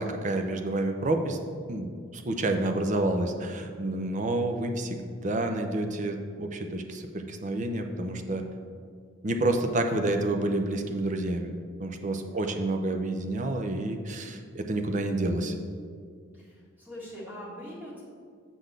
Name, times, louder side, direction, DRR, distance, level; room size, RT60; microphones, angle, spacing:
voice 1, 0.0-1.4 1.7-8.5 9.2-11.5 11.8-15.5, right 2 dB, 35° right, 5 dB, 0.5 m, -29 dB
voice 2, 12.2-12.7 16.3-18.0, equal, 10° right, -7 dB, 1.8 m, -43 dB
7.5 x 4.0 x 6.6 m, 2.1 s
head